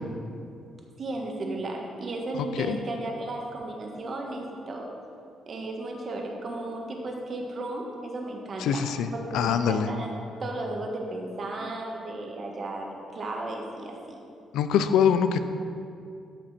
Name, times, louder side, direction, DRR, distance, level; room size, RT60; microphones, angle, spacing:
voice 1, 1.0-4.9 5.4-10.1 10.4-14.2, right 2 dB, 45° right, 0 dB, 1.5 m, -34 dB
voice 2, 8.6-9.9 14.5-15.4, left 7 dB, 85° left, 10 dB, 0.5 m, -24 dB
14.0 x 5.4 x 4.3 m, 2.5 s
cardioid pair, 90°, 0 cm